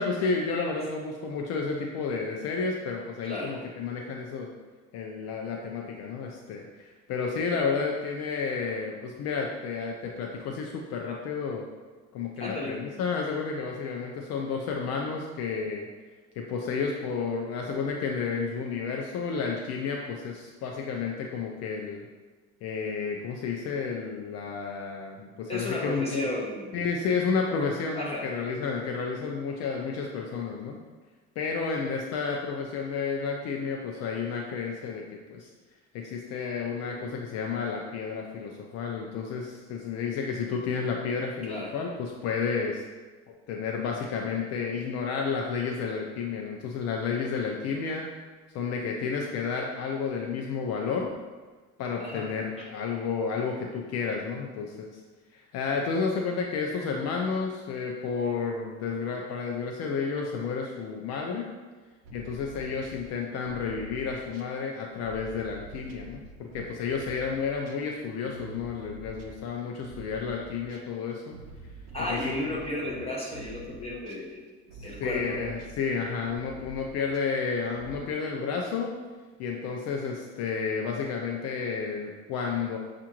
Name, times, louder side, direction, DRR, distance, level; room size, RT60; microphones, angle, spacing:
voice 1, 0.0-4.5 4.9-11.6 12.1-15.9 16.4-22.1 22.6-26.3 26.7-30.8 31.4-35.5 35.9-42.8 43.3-48.1 48.5-51.1 51.8-54.9 55.3-61.5 62.1-71.4 72.1-72.3 74.8-78.9 79.4-82.8, left 5 dB, 60° left, 1 dB, 0.5 m, -31 dB
voice 2, 3.2-3.6 12.4-12.8 25.5-26.8 28.0-28.3 41.4-41.7 52.0-52.3 52.6-52.7 71.9-74.4 74.8-75.5, left 1 dB, 20° left, -4 dB, 1.1 m, -33 dB
sound 1, 62.0-70.9 71.3-78.0, right 3 dB, 60° right, 0.6 m, -47 dB
6.7 x 2.5 x 2.9 m, 1.3 s
cardioid pair, 130°, 29 cm